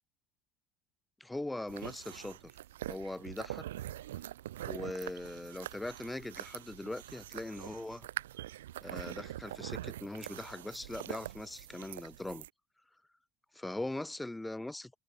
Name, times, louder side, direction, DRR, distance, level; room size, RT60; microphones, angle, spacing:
voice 1, 1.2-2.4 2.9-3.7 4.7-8.1 8.8-12.5 13.5-15.0, left 2 dB, 10° left, 0.6 m, -41 dB
sound 1, 1.7-12.5, right 13 dB, 85° right, 1.4 m, -44 dB
hypercardioid pair, 90°, 0 cm